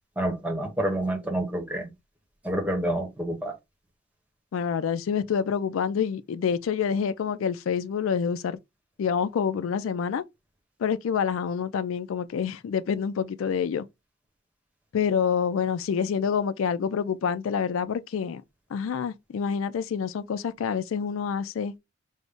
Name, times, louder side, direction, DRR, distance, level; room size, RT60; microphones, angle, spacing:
voice 1, 0.2-1.9 2.4-3.5, right 1 dB, 5° right, 0.9 m, -28 dB
voice 2, 4.5-8.6 9.0-10.2 10.8-13.9 14.9-18.4 18.7-21.7, left 7 dB, 80° left, 0.3 m, -27 dB
5.3 x 2.0 x 3.4 m
head